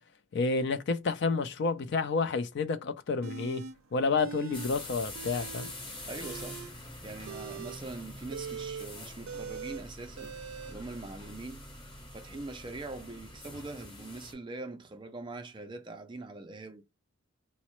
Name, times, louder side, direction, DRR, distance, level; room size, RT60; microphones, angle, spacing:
voice 1, 0.3-3.6 3.9-5.7, left 4 dB, 55° left, 0.4 m, -30 dB
sound 1, 3.2-3.7 4.2-4.7 5.0-5.7 6.1-10.7, right 7 dB, 85° right, 0.4 m, -42 dB
sound 2, 4.5-14.3, left 1 dB, 25° left, 0.9 m, -45 dB
voice 2, 6.1-6.7 7.0-10.4 10.7-11.7 12.1-16.8, right 2 dB, 20° right, 0.3 m, -42 dB
3.9 x 2.1 x 3.0 m
head